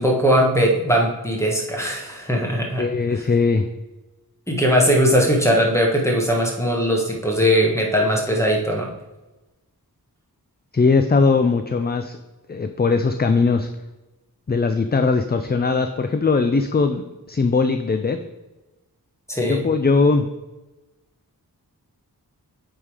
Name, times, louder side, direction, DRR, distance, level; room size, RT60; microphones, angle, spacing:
voice 1, 0.0-2.8 3.1-3.2 4.5-8.9 19.3-19.6, equal, 5° left, 0 dB, 1.5 m, -19 dB
voice 2, 2.8-3.6 10.7-12.2 12.5-13.7 14.5-17.0 17.3-18.2 19.4-20.3, left 4 dB, 25° left, 8 dB, 0.4 m, -19 dB
8.1 x 3.7 x 4.8 m, 1.1 s
wide cardioid pair, 75°, 38 cm